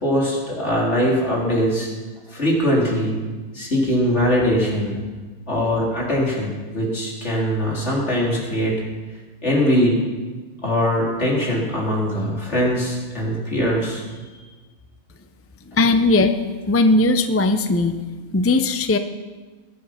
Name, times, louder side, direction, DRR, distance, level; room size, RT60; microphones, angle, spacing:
voice 1, 0.0-1.9 2.3-3.1 3.5-5.0 5.5-8.8 9.4-10.0 10.6-14.0, equal, 55° left, -4 dB, 3.9 m, -21 dB
voice 2, 15.8-16.3 16.7-18.0 18.3-19.0, left 2 dB, 20° left, 8 dB, 0.3 m, -18 dB
20.5 x 8.5 x 5.9 m, 1.3 s
omnidirectional pair, 1.4 m